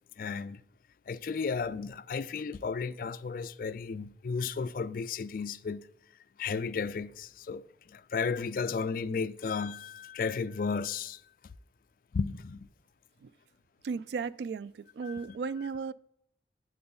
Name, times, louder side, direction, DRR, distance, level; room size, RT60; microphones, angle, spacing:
voice 1, 0.2-0.6 1.1-5.9 6.4-11.2 12.1-12.7 15.0-15.4, left 5 dB, 50° left, 0.3 m, -34 dB
voice 2, 13.8-15.9, right 5 dB, 70° right, 0.3 m, -35 dB
7.9 x 7.7 x 3.9 m
head